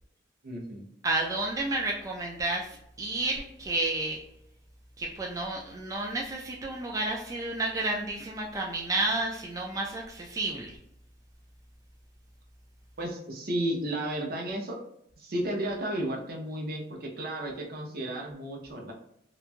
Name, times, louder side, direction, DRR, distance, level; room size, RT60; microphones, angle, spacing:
voice 1, 0.4-0.9 13.0-14.8 15.2-18.9, right 1 dB, 55° right, 1 dB, 0.6 m, -33 dB
voice 2, 1.0-4.2 5.0-10.7, right 2 dB, 20° right, -1 dB, 0.3 m, -31 dB
3.0 x 2.2 x 2.4 m, 0.75 s
head